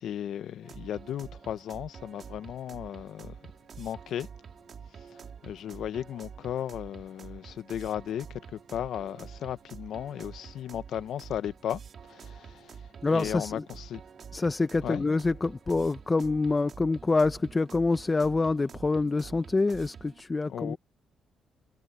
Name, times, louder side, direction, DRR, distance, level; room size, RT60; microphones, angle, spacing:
voice 1, 0.0-3.4 3.8-4.3 5.1-11.8 12.1-12.8 13.1-14.0 14.8-15.0 20.5-20.8, left 10 dB, 70° left, 1.2 m, -35 dB
sound 1, 0.6-20.2, right 6 dB, 50° right, 3.6 m, -47 dB
voice 2, 13.0-13.7 14.3-20.8, left 3 dB, 25° left, 1.0 m, -26 dB
cardioid pair, 90°, 0 cm